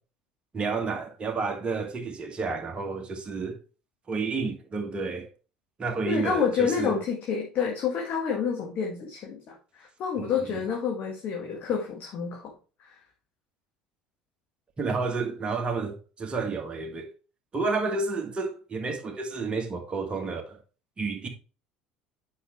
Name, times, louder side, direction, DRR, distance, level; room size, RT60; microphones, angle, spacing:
voice 1, 0.5-3.5 4.1-5.3 5.8-7.0 10.2-10.3 14.8-17.1 17.5-20.6 21.0-21.3, right 4 dB, 30° right, 1.6 m, -30 dB
voice 2, 6.1-12.5 12.8-13.0, left 6 dB, 50° left, 1.6 m, -29 dB
8.3 x 5.7 x 3.0 m
figure-of-eight pair, 65°, 4 cm